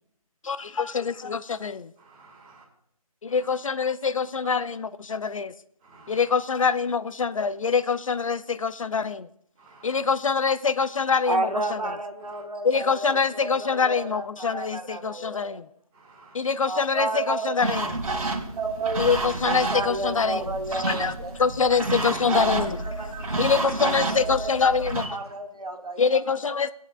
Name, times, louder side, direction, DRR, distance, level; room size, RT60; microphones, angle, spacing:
voice 1, 0.4-1.9 3.2-5.5 6.1-9.3 9.8-11.8 12.6-15.6 16.3-17.9 19.0-21.1 21.4-22.8 23.4-25.1 26.0-26.7, left 5 dB, 60° left, 15 dB, 0.4 m, -25 dB
voice 2, 2.0-2.6 3.3-3.6 4.4-4.5 5.9-6.2 9.6-10.1 12.3-12.4 15.9-16.3 25.0-25.3, right 1 dB, 15° right, -3 dB, 1.6 m, -48 dB
voice 3, 11.3-15.6 16.6-17.5 17.8-18.1 18.5-19.1 19.7-21.3 22.3-24.7 25.1-26.1, right 2 dB, 90° right, 5 dB, 1.3 m, -32 dB
sound 1, 17.6-25.1, right 2 dB, 70° right, 1.9 m, -30 dB
17.5 x 8.1 x 2.3 m, 0.71 s
figure-of-eight pair, 160°, 19 cm